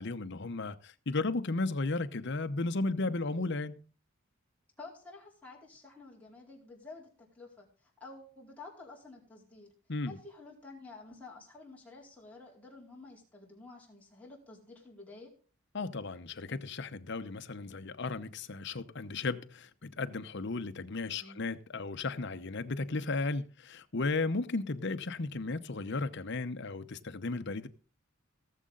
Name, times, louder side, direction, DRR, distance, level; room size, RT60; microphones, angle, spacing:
voice 1, 0.0-3.8 9.9-10.2 15.7-27.7, left 3 dB, 60° left, 0.9 m, -35 dB
voice 2, 4.8-9.7 10.1-15.3 21.2-21.5, left 3 dB, 5° left, 4.4 m, -51 dB
17.5 x 7.6 x 3.9 m
head